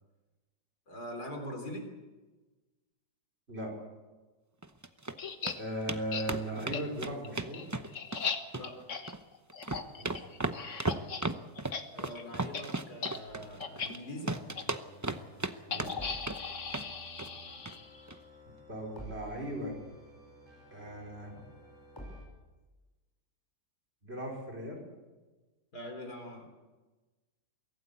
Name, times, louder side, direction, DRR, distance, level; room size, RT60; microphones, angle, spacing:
voice 1, 0.9-1.9 8.5-8.8 11.9-14.4 25.7-26.5, equal, 65° left, 3 dB, 4.1 m, -42 dB
sound 1, 4.6-5.1 5.5-5.6 5.9-6.0 6.3-8.2 8.5-9.2 9.5-14.0 14.3-15.5 15.8-16.4 16.7-16.9 17.2-17.4 17.7-17.8 18.1-18.2, right 2 dB, 20° right, 0.4 m, -35 dB
sound 2, 5.2-5.6 6.1-6.3 6.7-6.8 7.2-11.3 11.6-11.8 12.1-12.2 12.5-12.6 13.0-13.2 13.6-13.9 14.6-14.7 15.7-18.1, left 5 dB, 50° left, 1.6 m, -38 dB
voice 2, 5.6-7.7 10.0-10.3 15.7-15.9 18.7-19.8 20.7-21.4 24.0-24.9, right 1 dB, 35° right, 0 dB, 5.3 m, -38 dB
sound 3, 13.3-22.3, equal, 15° left, 5.9 m, -52 dB
23.5 x 16.5 x 8.5 m, 1.2 s
omnidirectional pair, 1.8 m